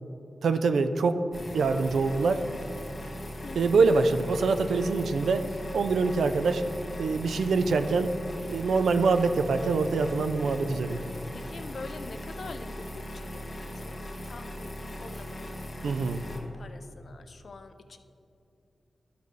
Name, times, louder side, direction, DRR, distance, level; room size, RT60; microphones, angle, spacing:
voice 1, 0.4-1.2 1.5-2.4 3.6-5.5 5.7-6.6 7.0-8.1 8.5-11.0 15.8-16.2, right 4 dB, 90° right, 9 dB, 0.4 m, -24 dB
sound 1, 1.3-16.4, equal, 45° left, 1.2 m, -39 dB
voice 2, 3.4-3.8 11.3-15.7 16.3-18.0, left 3 dB, 65° left, 8 dB, 0.5 m, -45 dB
11.5 x 6.6 x 3.2 m, 2.6 s
cardioid pair, 45°, 0 cm